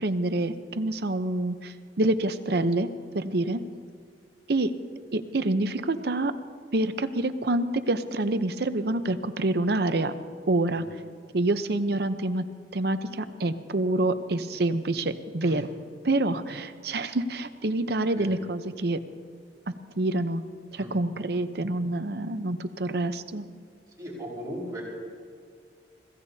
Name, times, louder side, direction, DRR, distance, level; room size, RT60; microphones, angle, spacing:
voice 1, 0.0-2.9 3.1-3.6 4.5-4.7 5.1-6.3 6.7-10.1 10.5-10.8 11.3-12.4 12.7-15.7 16.0-19.0 20.0-20.4 20.7-23.4, right 2 dB, 60° right, 10 dB, 0.8 m, -27 dB
voice 2, 24.0-24.8, equal, 20° right, -4 dB, 5.1 m, -38 dB
25.5 x 16.0 x 2.8 m, 2.2 s
head